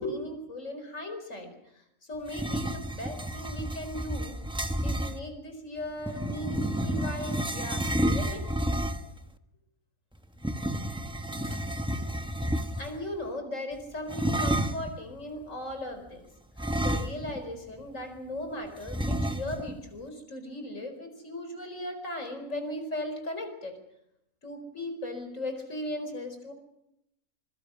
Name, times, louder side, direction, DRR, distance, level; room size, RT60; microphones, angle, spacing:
voice 1, 0.0-4.4 4.8-8.5 11.4-11.7 11.9-12.1 12.8-16.3 16.6-23.8 24.4-26.5, left 1 dB, 60° left, 6 dB, 5.0 m, -37 dB
sound 1, 2.3-5.2 6.0-9.2 10.4-13.0 14.1-14.9 16.6-17.5 17.8-17.9 18.9-19.7, right 1 dB, 5° right, 0.8 m, -30 dB
26.0 x 22.5 x 6.3 m, 0.81 s
omnidirectional pair, 1.5 m